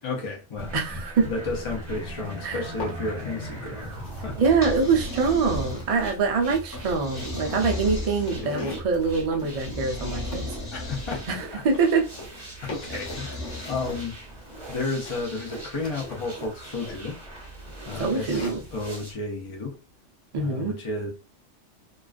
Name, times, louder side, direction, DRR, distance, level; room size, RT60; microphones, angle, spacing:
voice 1, 0.0-0.7 1.2-3.9 4.2-4.4 8.3-8.5 10.7-11.6 12.6-14.1 14.7-17.2 17.9-19.8 20.4-21.1, left 3 dB, 50° left, 0.3 m, -32 dB
sound 1, 0.6-19.1, right 2 dB, 25° right, 0.8 m, -39 dB
voice 2, 0.7-1.3 2.4-2.6 4.4-10.5 11.3-12.1 18.0-18.6 20.3-20.8, right 4 dB, 60° right, 0.3 m, -24 dB
sound 2, 2.6-3.5 3.8-18.8, left 4 dB, 80° left, 1.1 m, -43 dB
sound 3, 4.4-6.1 6.7-8.7 9.6-11.4 12.6-14.2, left 2 dB, 20° left, 1.1 m, -36 dB
2.3 x 2.3 x 2.3 m
omnidirectional pair, 1.3 m